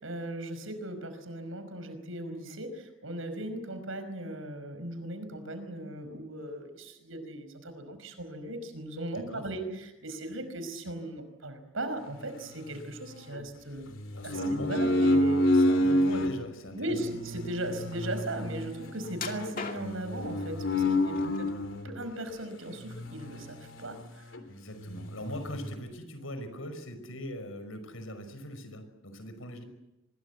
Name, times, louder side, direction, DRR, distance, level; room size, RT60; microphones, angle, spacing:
voice 1, 0.0-13.9 14.2-15.4 16.8-21.3 21.8-24.3, right 1 dB, 80° right, 9 dB, 5.2 m, -38 dB
voice 2, 9.1-9.5 14.1-14.7 15.5-17.0 21.1-21.4 24.5-29.6, equal, 90° left, 9 dB, 5.6 m, -41 dB
sound 1, 12.2-13.4 13.9-16.3 16.9-22.0 22.8-24.0 24.3-24.4 24.8-25.8, left 1 dB, 70° left, 3.2 m, -29 dB
sound 2, 19.1-20.2 20.8-21.5 21.9-22.8 23.2-23.4 23.9-24.0, left 5 dB, 45° left, 2.4 m, -40 dB
24.5 x 22.0 x 8.2 m, 0.94 s
head